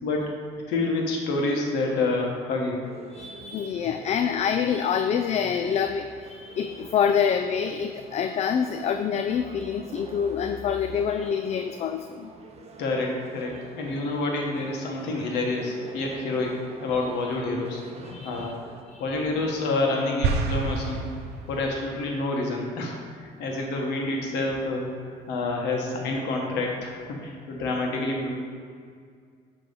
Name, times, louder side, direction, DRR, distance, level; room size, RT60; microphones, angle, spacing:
voice 1, 0.0-0.3 0.7-3.0 12.8-17.8 18.2-18.6 19.0-21.0 21.5-28.3, left 2 dB, 85° left, 0 dB, 1.4 m, -28 dB
sound 1, 2.8-18.8, right 4 dB, 40° right, 0.8 m, -46 dB
voice 2, 3.1-12.3 18.0-18.5 18.9-19.0, left 7 dB, 40° left, 8 dB, 0.4 m, -26 dB
sound 2, 20.2-21.9, right 4 dB, 75° right, 0.7 m, -28 dB
9.4 x 3.4 x 5.3 m, 2.1 s
cardioid pair, 110°, 17 cm